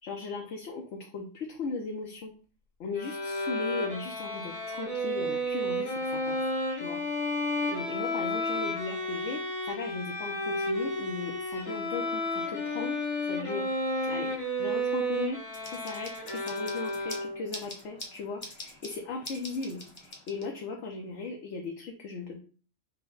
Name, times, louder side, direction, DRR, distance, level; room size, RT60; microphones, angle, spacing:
voice 1, 0.0-2.3 2.8-7.0 7.3-13.0 13.3-13.7 14.0-14.3 14.6-15.4 15.7-22.4, left 4 dB, 65° left, 0 dB, 1.0 m, -38 dB
Bowed string instrument, 2.9-17.6, equal, 85° left, 1.6 m, -32 dB
sound 1, 15.5-20.8, left 1 dB, 25° left, 0.9 m, -45 dB
5.6 x 2.1 x 3.8 m, 0.41 s
omnidirectional pair, 1.3 m